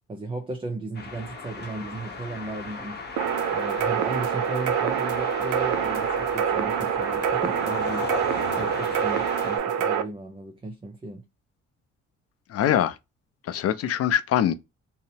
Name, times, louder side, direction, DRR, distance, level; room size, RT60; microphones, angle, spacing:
voice 1, 0.1-3.0 3.5-11.3, right 2 dB, 20° right, 0.4 m, -36 dB
sound 1, 0.9-9.6, left 3 dB, 35° left, 0.8 m, -36 dB
sound 2, 3.2-10.0, right 8 dB, 70° right, 0.5 m, -26 dB
voice 2, 12.5-12.9 13.5-14.5, left 10 dB, 55° left, 0.4 m, -23 dB
2.7 x 2.0 x 2.7 m
cardioid pair, 90°, 30 cm